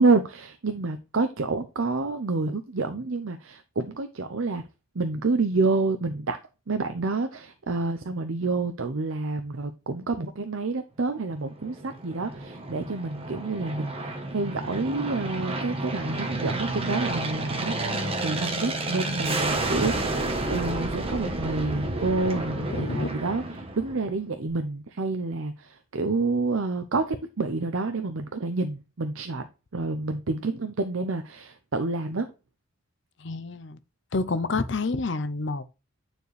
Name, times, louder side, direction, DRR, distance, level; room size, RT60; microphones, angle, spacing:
voice 1, 0.0-4.6 4.9-6.4 6.7-17.7 18.2-23.4 23.8-29.5 29.7-32.3, right 3 dB, 70° right, 0.7 m, -28 dB
Aircraft, 11.5-24.2, right 2 dB, 25° right, 1.1 m, -31 dB
voice 2, 22.5-23.1 33.2-33.8 34.1-35.6, left 3 dB, 60° left, 0.7 m, -29 dB
9.3 x 4.5 x 3.3 m
head